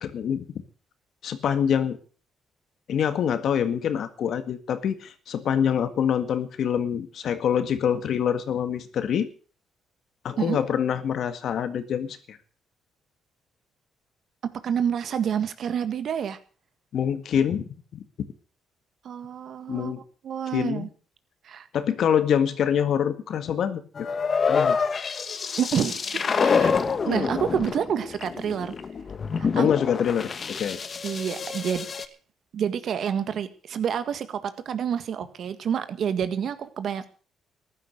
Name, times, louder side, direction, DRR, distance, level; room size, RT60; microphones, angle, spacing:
voice 1, 0.0-0.5 1.2-2.0 2.9-9.3 10.2-12.4 16.9-18.0 19.7-20.0 20.5-20.9 21.7-23.8 24.5-24.8 29.5-30.8, left 8 dB, 65° left, 11 dB, 1.8 m, -25 dB
voice 2, 14.6-16.4 19.0-19.9 20.2-20.9 21.4-21.7 25.6-26.7 27.1-28.7 29.4-29.7 31.0-31.9 32.5-37.1, right 8 dB, 65° right, 11 dB, 1.8 m, -28 dB
sound 1, 24.0-32.1, left 5 dB, 45° left, 1.3 m, -27 dB
14.5 x 12.0 x 6.6 m, 0.39 s
cardioid pair, 90°, 0 cm